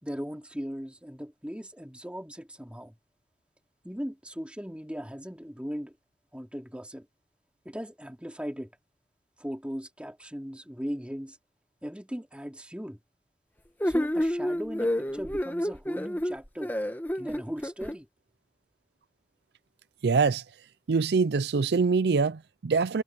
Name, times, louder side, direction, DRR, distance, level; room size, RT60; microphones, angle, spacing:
voice 1, 0.0-3.0 3.8-6.0 6.3-7.1 7.7-8.7 9.4-11.4 11.8-13.0 13.8-16.7 17.2-18.1, equal, 5° right, 3.4 m, -38 dB
sound 1, 13.8-17.9, equal, 10° left, 1.2 m, -29 dB
voice 2, 20.0-20.4 20.9-23.0, right 4 dB, 65° right, 0.5 m, -24 dB
head